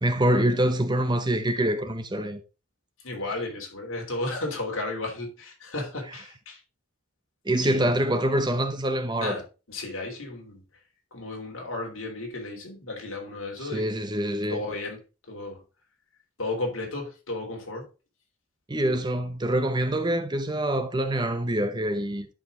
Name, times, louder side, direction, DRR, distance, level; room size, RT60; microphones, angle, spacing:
voice 1, 0.0-2.4 7.5-9.4 13.6-14.6 18.7-22.3, right 1 dB, 20° right, 0.7 m, -25 dB
voice 2, 3.0-6.6 7.6-7.9 9.2-10.6 11.1-13.9 14.5-15.0 15.3-15.6 16.4-17.8, left 2 dB, 65° left, 3.2 m, -34 dB
11.0 x 5.1 x 3.7 m
head